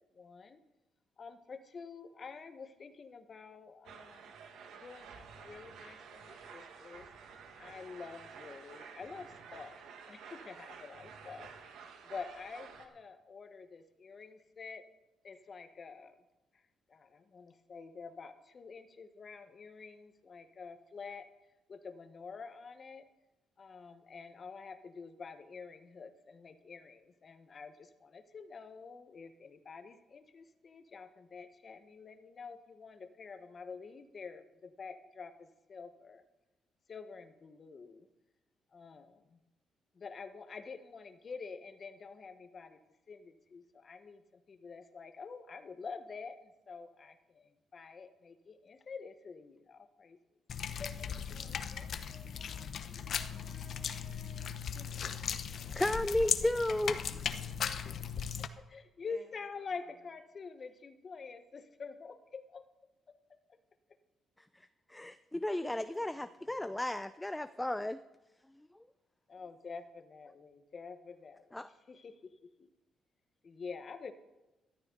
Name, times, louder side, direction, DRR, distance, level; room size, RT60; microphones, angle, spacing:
voice 1, 0.1-0.6 1.2-4.3 4.8-7.1 7.6-9.8 10.1-11.5 12.0-14.9 15.2-16.2 16.9-21.3 21.7-23.1 23.6-36.2 36.9-38.1 38.7-39.4 39.9-42.8 43.1-50.2 50.8-51.5 58.4-63.4 69.3-72.7 73.4-74.1, left 5 dB, 45° left, 9 dB, 1.2 m, -48 dB
sound 1, 3.8-12.9, right 6 dB, 80° right, 1.7 m, -51 dB
sound 2, 50.5-58.5, left 7 dB, 60° left, 0.8 m, -37 dB
voice 2, 51.1-55.3 59.1-59.2 66.0-66.1 66.4-66.7, right 2 dB, 40° right, 1 dB, 3.4 m, -60 dB
voice 3, 55.7-57.0 64.9-68.0 71.5-71.7, left 1 dB, 10° left, 12 dB, 0.5 m, -33 dB
14.0 x 13.0 x 3.9 m, 1.0 s
cardioid pair, 90°, 0 cm